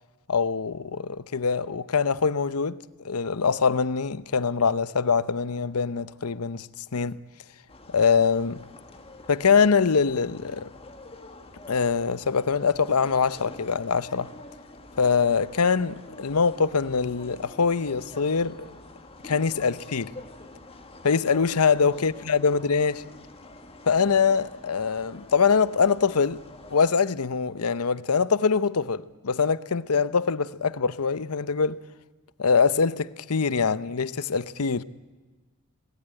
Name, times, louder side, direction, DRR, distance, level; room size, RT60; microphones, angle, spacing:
voice 1, 0.3-2.8 3.0-6.7 6.9-7.2 7.9-8.6 9.3-10.7 11.7-14.3 15.0-18.7 19.2-20.1 21.0-23.0 23.9-26.4 26.7-31.8 32.4-34.8, left 5 dB, 80° left, 0.8 m, -23 dB
sound 1, 7.7-26.9, left 2 dB, 25° left, 1.7 m, -46 dB
25.5 x 19.0 x 9.0 m
head